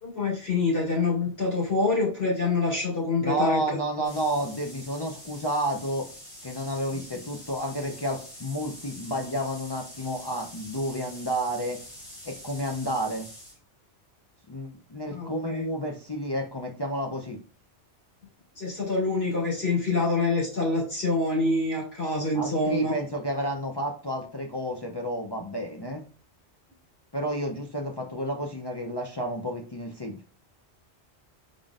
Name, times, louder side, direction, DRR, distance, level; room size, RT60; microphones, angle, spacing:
voice 1, 0.0-4.1 15.1-15.6 18.6-23.0, left 2 dB, 65° left, -6 dB, 2.6 m, -26 dB
voice 2, 3.2-6.1 6.4-11.8 12.2-13.3 14.5-17.4 22.3-26.0 27.1-30.2, equal, 35° left, 1 dB, 0.4 m, -31 dB
sound 1, 4.0-13.6, left 1 dB, 85° left, 2.1 m, -45 dB
5.1 x 3.7 x 2.4 m, 0.38 s
omnidirectional pair, 1.1 m